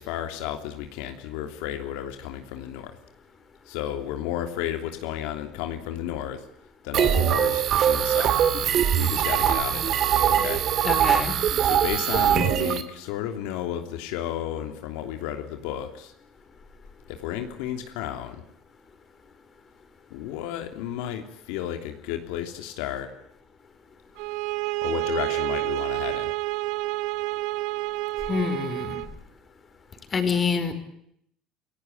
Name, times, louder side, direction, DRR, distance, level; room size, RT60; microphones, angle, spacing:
voice 1, 0.0-3.0 3.6-6.4 6.8-8.4 8.9-10.6 11.6-16.1 17.1-18.4 20.1-23.1 24.8-26.3, left 11 dB, 80° left, 6 dB, 3.1 m, -33 dB
sound 1, 6.9-12.8, right 9 dB, 45° right, 2.4 m, -22 dB
voice 2, 10.8-11.3 28.3-29.0 30.1-30.7, left 5 dB, 25° left, 9 dB, 5.0 m, -26 dB
sound 2, 24.2-29.1, right 20 dB, 70° right, 1.2 m, -29 dB
29.0 x 17.5 x 9.4 m, 0.72 s
cardioid pair, 135°, 0 cm